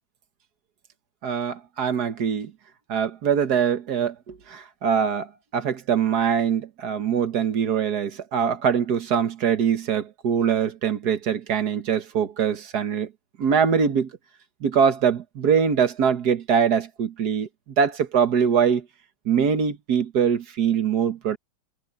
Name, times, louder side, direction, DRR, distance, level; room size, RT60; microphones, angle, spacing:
voice 1, 1.2-2.5 2.9-13.1 13.4-14.1 14.6-17.5 17.8-18.9 19.3-21.4, right 7 dB, 55° right, 1.8 m, -23 dB
omnidirectional pair, 2.2 m